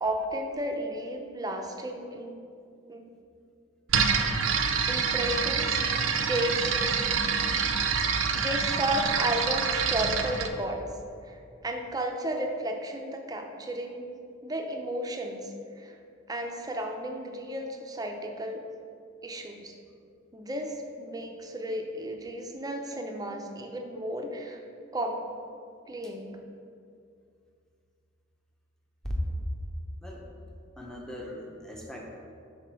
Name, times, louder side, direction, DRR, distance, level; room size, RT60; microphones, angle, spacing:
voice 1, 0.0-2.4 2.9-3.1 4.9-5.8 6.0-6.6 8.3-10.8 11.3-14.0 14.4-15.5 15.8-16.0 16.3-18.6 19.2-19.7 20.3-24.6 24.9-25.2 25.9-26.4, right 1 dB, 20° right, 3 dB, 0.6 m, -33 dB
sound 1, 3.9-10.5, right 6 dB, 80° right, 0.5 m, -26 dB
voice 2, 30.8-32.1, equal, 5° left, -2 dB, 0.8 m, -38 dB
5.9 x 5.0 x 4.6 m, 2.4 s
head